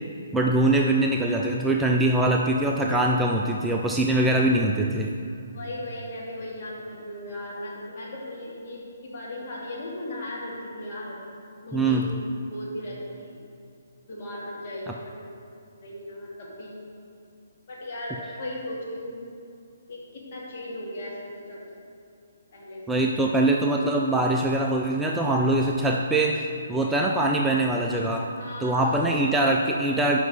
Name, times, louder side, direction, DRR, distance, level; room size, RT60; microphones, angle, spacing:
voice 1, 0.3-5.1 11.7-12.1 22.9-26.4 26.7-28.3 28.6-30.2, right 2 dB, 5° right, 0 dB, 0.4 m, -23 dB
voice 2, 5.5-11.2 11.6-12.2 12.4-13.4 14.1-15.2 15.7-16.8 17.7-19.2 19.9-21.6 22.5-23.0 28.3-29.1, left 1 dB, 40° left, -5 dB, 2.4 m, -37 dB
9.7 x 5.5 x 5.3 m, 2.4 s
figure-of-eight pair, 135°, 0 cm